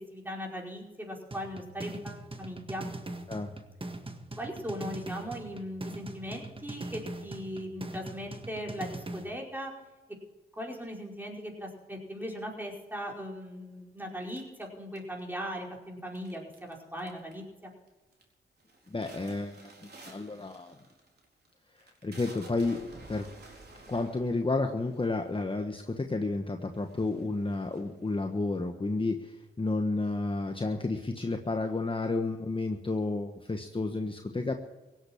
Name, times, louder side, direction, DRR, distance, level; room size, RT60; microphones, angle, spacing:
voice 1, 0.1-2.9 4.4-9.7 10.6-17.7, equal, 10° right, -1 dB, 4.9 m, -39 dB
sound 1, 1.3-9.3, right 2 dB, 25° right, 1.7 m, -41 dB
sound 2, 14.3-15.4 16.1-16.7 17.0-17.5 17.9-18.2 18.6-25.6 26.3-26.4 26.7-28.3, right 2 dB, 50° right, 4.3 m, -52 dB
voice 2, 18.9-20.7 21.8-23.3 23.9-34.5, left 3 dB, 25° left, 5 dB, 1.3 m, -31 dB
17.0 x 8.5 x 8.7 m, 1.2 s
cardioid pair, 55°, 21 cm